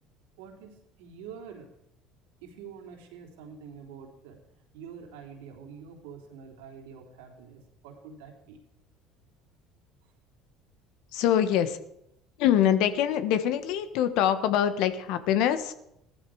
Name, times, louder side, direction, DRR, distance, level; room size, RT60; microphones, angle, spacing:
voice 1, 0.4-1.7 2.4-4.4 4.7-8.6, right 6 dB, 75° right, 1 dB, 3.5 m, -46 dB
voice 2, 11.1-11.8 12.4-15.7, left 10 dB, 70° left, 10 dB, 1.4 m, -24 dB
16.5 x 13.5 x 4.9 m, 0.79 s
hypercardioid pair, 70°, 0 cm